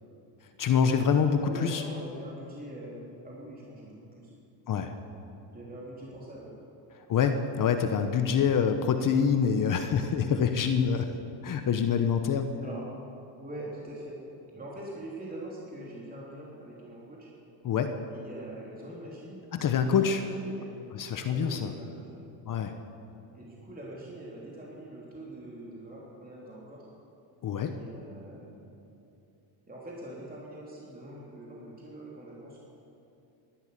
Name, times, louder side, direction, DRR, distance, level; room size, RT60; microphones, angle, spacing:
voice 1, 0.6-1.8 4.7-4.9 6.9-11.1 11.4-12.5 17.6-17.9 19.5-20.2 20.9-21.7 22.5-22.7 27.4-27.7, left 7 dB, 40° left, 7 dB, 1.1 m, -26 dB
voice 2, 1.4-4.3 5.5-6.6 12.6-12.8 13.3-14.2 14.5-17.3 18.1-19.4 19.7-20.7 21.3-22.1 23.3-26.9 27.6-28.7 29.7-32.6, right 1 dB, 20° right, -5 dB, 3.3 m, -43 dB
18.0 x 12.0 x 6.8 m, 2.7 s
cardioid pair, 115°, 48 cm